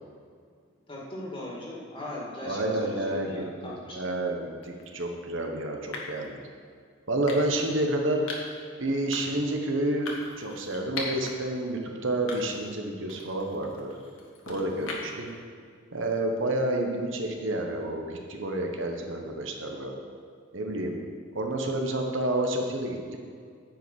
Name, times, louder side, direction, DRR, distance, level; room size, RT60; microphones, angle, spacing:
voice 1, 0.9-4.0, left 1 dB, 25° left, -4 dB, 2.1 m, -39 dB
voice 2, 2.4-6.4 7.1-8.2 8.8-13.9 14.5-15.3 15.9-19.9 20.5-21.0 21.3-23.2, right 1 dB, 70° right, 2 dB, 1.2 m, -29 dB
sound 1, 4.6-4.9 5.9-6.3 7.3-7.7 8.3-8.6 9.1-9.5 10.1-11.3 11.7-11.8 12.3-12.7 13.1-15.3, left 3 dB, 80° left, 1.7 m, -39 dB
10.0 x 5.3 x 7.8 m, 2.1 s
head